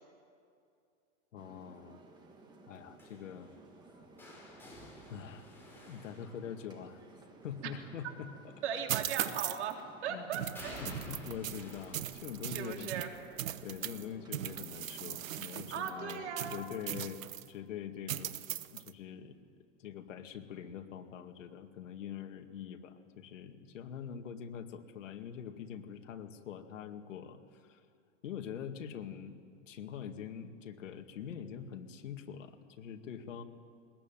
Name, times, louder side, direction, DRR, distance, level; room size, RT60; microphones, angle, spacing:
voice 1, 1.3-2.0 2.7-3.5 5.1-5.5 5.9-7.0 7.4-8.5 9.2-9.3 10.1-10.3 10.8-12.9 13.6-18.4 18.7-19.4 19.8-27.8 28.2-33.4, left 8 dB, 70° left, 6 dB, 2.2 m, -44 dB
sound 1, 1.4-16.8, right 3 dB, 10° right, 1.5 m, -56 dB
sound 2, 3.0-7.0 9.2-9.8 10.5-16.4 16.7-17.1 18.4-18.5, left 1 dB, 5° left, 4.4 m, -53 dB
voice 2, 8.6-9.8 10.0-10.8 12.4-13.1 15.7-16.6, right 7 dB, 60° right, 3 dB, 3.7 m, -38 dB
sound 3, 8.9-9.7 10.3-14.0 14.3-17.5 18.1-18.9, right 12 dB, 85° right, 1.1 m, -39 dB
21.0 x 20.5 x 9.2 m, 2.3 s
supercardioid pair, 165°, 39 cm